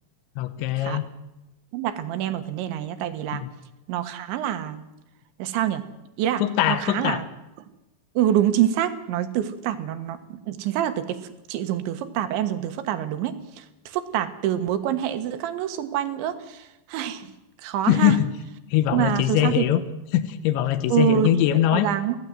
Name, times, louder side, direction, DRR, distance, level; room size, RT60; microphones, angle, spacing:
voice 1, 0.4-1.1 3.3-3.5 6.4-7.2 17.9-18.3 18.7-19.8 20.1-21.9, left 12 dB, 85° left, 11 dB, 3.4 m, -22 dB
voice 2, 1.7-3.4 3.9-4.8 5.4-5.8 6.2-6.4 6.7-7.3 8.2-11.2 11.5-17.3 17.6-18.2 18.9-19.7 20.9-21.3 21.7-22.2, right 11 dB, 85° right, 9 dB, 3.7 m, -26 dB
24.0 x 16.5 x 7.8 m, 0.99 s
omnidirectional pair, 5.2 m